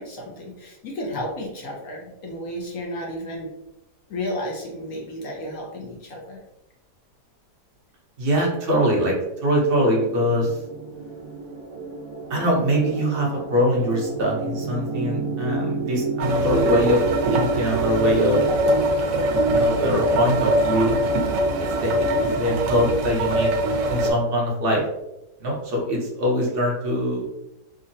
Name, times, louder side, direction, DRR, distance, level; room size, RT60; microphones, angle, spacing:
voice 1, 0.0-3.5 4.1-6.4, left 1 dB, 65° left, -1 dB, 0.9 m, -32 dB
voice 2, 8.2-9.1 9.4-10.6 12.3-17.0 17.3-18.4 19.4-20.9 21.6-21.9 22.2-23.5 23.9-24.8 25.4-27.2, equal, 45° right, -2 dB, 0.8 m, -23 dB
sound 1, 9.3-22.4, right 4 dB, 65° right, 1.2 m, -31 dB
sound 2, 16.2-24.1, right 1 dB, 85° right, 1.2 m, -23 dB
3.6 x 2.0 x 2.6 m, 0.89 s
omnidirectional pair, 1.8 m